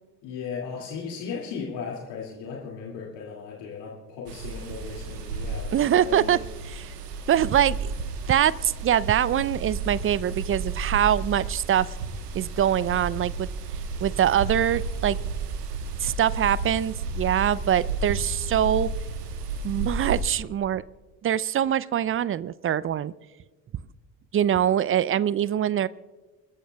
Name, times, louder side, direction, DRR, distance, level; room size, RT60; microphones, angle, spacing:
voice 1, 0.2-6.4, left 6 dB, 60° left, -2 dB, 2.5 m, -36 dB
sound 1, 4.3-20.2, right 4 dB, 85° right, 1.2 m, -32 dB
voice 2, 5.7-6.4 6.6-6.9 7.3-7.9 8.3-12.0 12.3-13.5 14.0-15.2 16.0-18.9 19.6-20.8 21.2-23.1 24.3-25.9, right 10 dB, 30° right, 20 dB, 0.5 m, -23 dB
28.0 x 14.0 x 2.3 m, 1.3 s
figure-of-eight pair, 50°, 47 cm